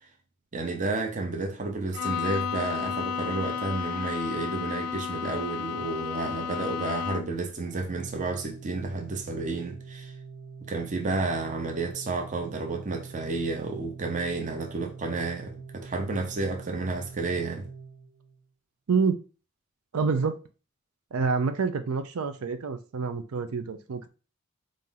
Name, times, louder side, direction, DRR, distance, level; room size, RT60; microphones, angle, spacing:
voice 1, 0.5-10.1 10.6-17.7, right 3 dB, 35° right, 0.7 m, -31 dB
Bowed string instrument, 1.9-7.5, left 7 dB, 85° left, 0.4 m, -32 dB
Organ, 7.6-18.5, right 5 dB, 55° right, 1.0 m, -44 dB
voice 2, 19.9-20.3 21.1-24.1, right 5 dB, 75° right, 0.5 m, -27 dB
4.2 x 2.6 x 3.8 m
head